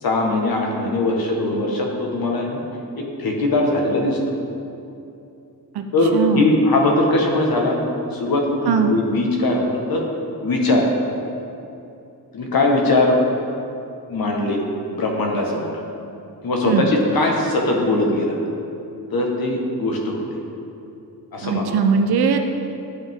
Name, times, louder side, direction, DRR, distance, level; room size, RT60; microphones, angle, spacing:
voice 1, 0.0-2.6 3.0-4.2 5.9-7.8 8.1-10.0 10.4-10.9 12.3-13.2 14.1-14.6 14.9-15.8 16.4-18.3 19.1-20.2 21.3-21.8, left 2 dB, 65° left, 0 dB, 1.4 m, -20 dB
voice 2, 6.1-6.6 8.7-9.0 16.6-16.9 21.4-22.4, right 5 dB, 80° right, 6 dB, 0.6 m, -19 dB
10.0 x 8.1 x 3.6 m, 2.8 s
wide cardioid pair, 135°, 38 cm